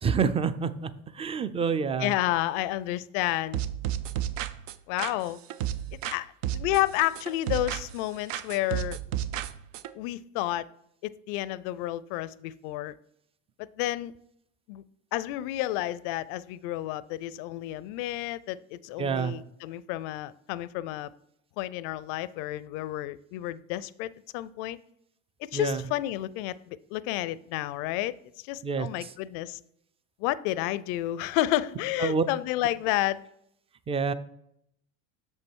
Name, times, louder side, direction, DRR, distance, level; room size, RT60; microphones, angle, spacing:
voice 1, 0.0-2.1 19.0-19.3 25.5-25.8 28.6-29.1 32.0-32.2 33.9-34.1, right 5 dB, 15° right, 14 dB, 0.3 m, -27 dB
voice 2, 2.0-3.6 4.9-5.4 6.0-9.0 9.9-10.7 11.0-13.0 13.6-14.1 14.7-14.8 15.1-21.1 21.6-24.8 25.5-29.6 30.2-33.2, left 15 dB, 65° left, 19 dB, 0.5 m, -31 dB
sound 1, 3.5-6.2 6.4-8.0 8.3-9.9, right 11 dB, 80° right, 0.6 m, -32 dB
6.6 x 5.4 x 4.5 m, 0.74 s
supercardioid pair, 100°, 37 cm